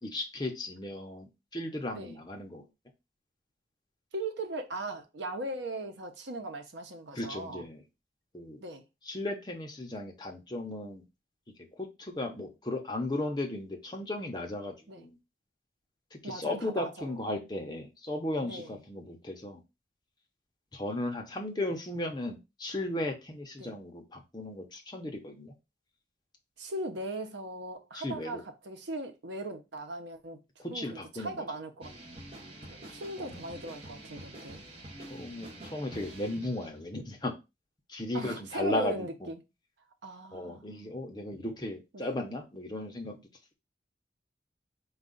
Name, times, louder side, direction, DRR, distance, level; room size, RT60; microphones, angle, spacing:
voice 1, 0.0-2.7 7.1-7.8 8.3-8.6 9.0-11.0 11.7-15.2 16.1-19.6 20.7-25.5 27.9-28.4 30.6-31.3 33.2-33.4 35.1-37.3 37.9-39.3 40.3-43.2, left 1 dB, 25° left, 0.8 m, -36 dB
voice 2, 4.1-7.7 8.6-8.8 14.9-15.0 16.2-17.2 18.4-18.8 23.6-23.7 26.6-30.4 30.7-31.9 32.7-34.6 38.1-39.4 40.0-41.0 41.9-42.1, right 2 dB, 85° right, 0.8 m, -39 dB
sound 1, 31.8-36.8, right 1 dB, 30° right, 1.0 m, -47 dB
4.6 x 2.4 x 3.9 m
head